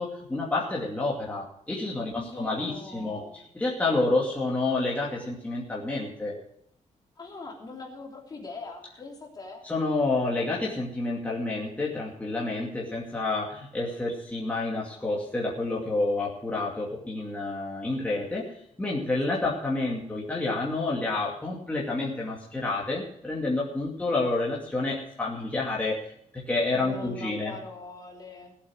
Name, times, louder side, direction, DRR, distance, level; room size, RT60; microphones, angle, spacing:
voice 1, 0.0-3.2 3.5-6.4 9.6-18.5 18.8-27.5, left 2 dB, 10° left, -4 dB, 2.5 m, -29 dB
voice 2, 2.1-3.5 7.2-9.7 19.4-19.5 26.7-28.6, left 3 dB, 30° left, 0 dB, 3.2 m, -42 dB
17.5 x 8.4 x 6.3 m, 0.71 s
wide cardioid pair, 170°, 13 cm